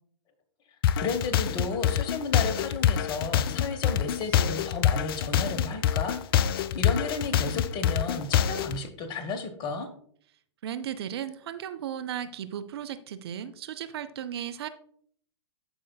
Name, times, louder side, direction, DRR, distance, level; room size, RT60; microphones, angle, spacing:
sound 1, 0.8-8.8, left 10 dB, 50° left, 0.4 m, -25 dB
voice 1, 1.0-9.9, left 4 dB, 30° left, 8 dB, 1.1 m, -33 dB
voice 2, 10.6-14.7, right 10 dB, 55° right, 12 dB, 0.5 m, -35 dB
12.5 x 5.0 x 2.2 m, 0.62 s
figure-of-eight pair, 110°, 16 cm